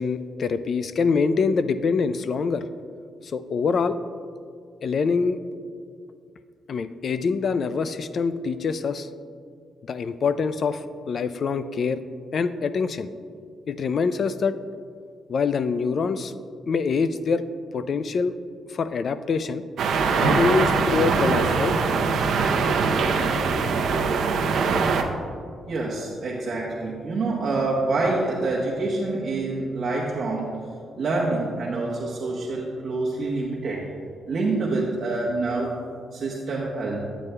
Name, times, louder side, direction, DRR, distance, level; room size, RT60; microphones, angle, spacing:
voice 1, 0.0-2.6 3.2-4.0 4.8-5.4 6.7-9.1 9.8-12.0 12.3-13.1 13.7-14.6 15.3-16.3 16.7-17.4 17.7-18.4 18.7-19.6 20.2-21.7, left 5 dB, 50° left, 13 dB, 0.3 m, -25 dB
sound 1, 19.8-25.0, right 4 dB, 75° right, 0.6 m, -22 dB
voice 2, 25.7-30.5 31.0-33.9 34.3-35.7 36.1-37.0, right 3 dB, 55° right, -5 dB, 1.0 m, -26 dB
9.4 x 8.9 x 2.2 m, 2.2 s
cardioid pair, 110°, 0 cm